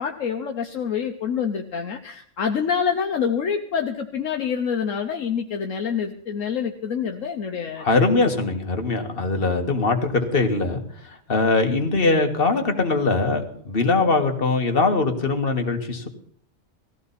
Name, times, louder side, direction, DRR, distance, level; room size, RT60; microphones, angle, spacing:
voice 1, 0.0-8.0, left 7 dB, 70° left, 4 dB, 1.3 m, -26 dB
voice 2, 7.8-10.8 11.3-16.1, left 3 dB, 45° left, 4 dB, 1.9 m, -21 dB
18.5 x 14.5 x 4.2 m, 0.62 s
omnidirectional pair, 1.4 m